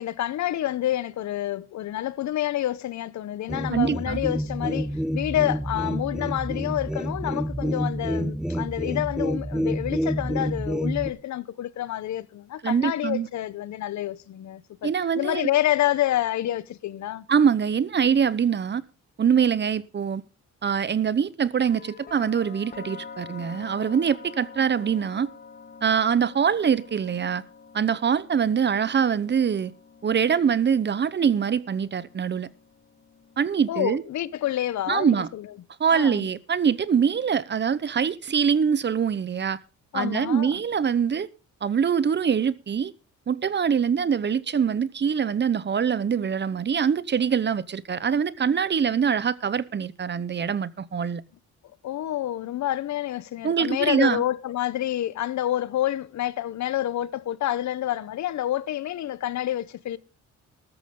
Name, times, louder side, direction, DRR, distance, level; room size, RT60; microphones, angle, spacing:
voice 1, 0.0-14.9 15.1-17.3 33.7-35.5 35.9-36.3 39.9-40.5 51.8-60.0, left 13 dB, 65° left, 0.9 m, -28 dB
sound 1, 3.5-11.1, equal, ahead, 1.1 m, -28 dB
voice 2, 3.7-4.2 12.6-13.3 14.8-15.5 17.3-18.8 19.2-20.2 20.6-25.3 25.8-27.4 27.7-29.7 30.0-32.5 33.4-34.0 34.9-35.3 35.8-39.6 39.9-41.3 41.6-42.9 43.3-51.2 53.4-54.2, right 7 dB, 35° right, 0.9 m, -24 dB
sound 2, 21.7-35.6, left 5 dB, 30° left, 1.9 m, -47 dB
13.5 x 13.0 x 3.8 m
cardioid pair, 90°, 30 cm